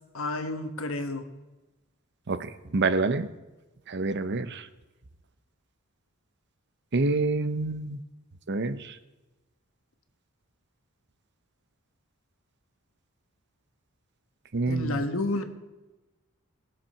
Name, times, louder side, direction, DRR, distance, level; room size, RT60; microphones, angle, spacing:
voice 1, 0.1-1.3 14.7-15.4, left 2 dB, 70° left, 7 dB, 1.4 m, -30 dB
voice 2, 2.3-3.3 3.9-4.7 6.9-8.0 8.5-9.0 14.5-15.0, right 3 dB, 55° right, 12 dB, 0.7 m, -27 dB
20.0 x 7.4 x 5.6 m, 1.1 s
head